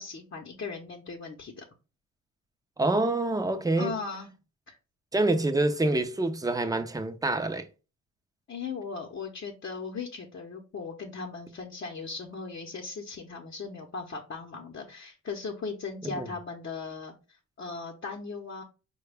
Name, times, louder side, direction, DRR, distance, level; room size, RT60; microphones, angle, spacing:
voice 1, 0.0-1.6 3.8-4.3 4.7-4.8 8.5-17.1 17.6-18.6, left 4 dB, 40° left, 0.9 m, -38 dB
voice 2, 2.8-3.9 5.1-7.6 16.0-16.3, right 2 dB, 10° right, 0.6 m, -26 dB
4.7 x 2.3 x 3.4 m
cardioid pair, 90°, 30 cm